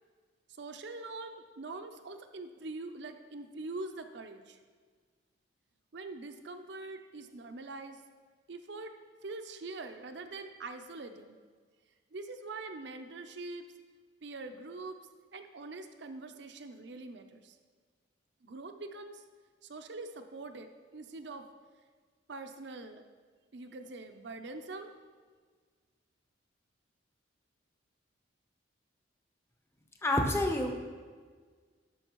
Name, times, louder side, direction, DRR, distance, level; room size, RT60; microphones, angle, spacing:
voice 1, 0.6-4.6 5.9-8.0 8.5-8.9 9.2-11.4 12.1-13.7 14.2-15.0 15.3-17.6 18.4-19.2 19.6-21.5 22.3-23.0 23.5-24.9, right 3 dB, 60° right, 7 dB, 0.6 m, -43 dB
voice 2, 30.0-30.8, left 1 dB, 15° left, 2 dB, 0.8 m, -28 dB
12.5 x 6.3 x 3.0 m, 1.6 s
head